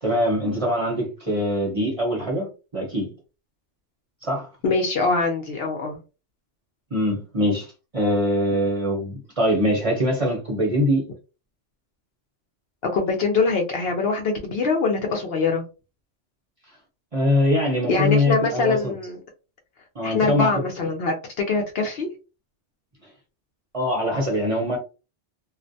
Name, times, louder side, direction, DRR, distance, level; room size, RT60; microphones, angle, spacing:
voice 1, 0.0-3.1 4.2-4.5 6.9-11.1 17.1-18.9 19.9-20.6 23.7-24.8, left 1 dB, 35° right, 0.7 m, -23 dB
voice 2, 4.6-6.0 12.9-15.6 17.9-19.2 20.0-22.1, left 4 dB, 65° left, 0.7 m, -23 dB
2.4 x 2.1 x 2.6 m
omnidirectional pair, 1.2 m